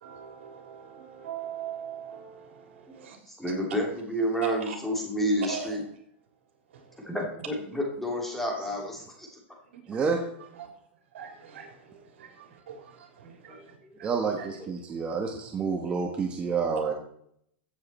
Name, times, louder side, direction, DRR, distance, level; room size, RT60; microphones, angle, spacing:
voice 1, 0.0-3.2 4.4-4.8 5.5-5.8 6.7-7.1 9.7-9.8 10.5-10.7 11.1-14.1 14.4-14.5, right 8 dB, 85° right, 4 dB, 3.5 m, -41 dB
voice 2, 2.9-5.8 7.0-9.4 13.9-14.0 14.6-14.7, equal, 5° left, -1 dB, 2.9 m, -30 dB
voice 3, 9.9-10.3 14.0-16.9, right 5 dB, 20° right, 2 dB, 1.4 m, -29 dB
15.0 x 7.8 x 4.4 m, 0.70 s
supercardioid pair, 155°, 6 cm